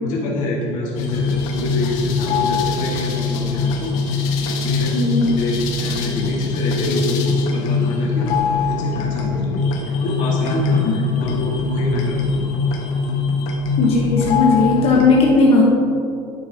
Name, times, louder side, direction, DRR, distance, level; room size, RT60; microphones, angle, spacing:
voice 1, 0.0-4.2 4.5-4.9 5.4-9.6 10.0-12.4, left 1 dB, 65° left, -3 dB, 1.8 m, -25 dB
sound 1, 0.9-15.1, left 4 dB, 85° left, 1.2 m, -22 dB
voice 2, 4.9-5.3 13.8-15.6, left 3 dB, 45° left, -3 dB, 1.2 m, -16 dB
10.0 x 8.4 x 2.9 m, 2.6 s
cardioid pair, 135°, 14 cm